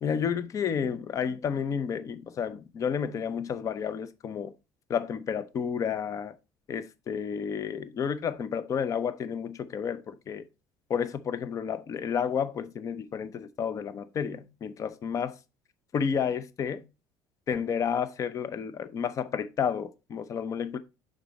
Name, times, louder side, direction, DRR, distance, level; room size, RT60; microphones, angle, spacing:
voice 1, 0.0-4.5 4.9-6.4 6.7-10.5 10.9-15.3 15.9-16.8 17.5-20.8, left 7 dB, 35° left, 0.6 m, -31 dB
6.8 x 5.3 x 4.0 m
cardioid pair, 130°, 9 cm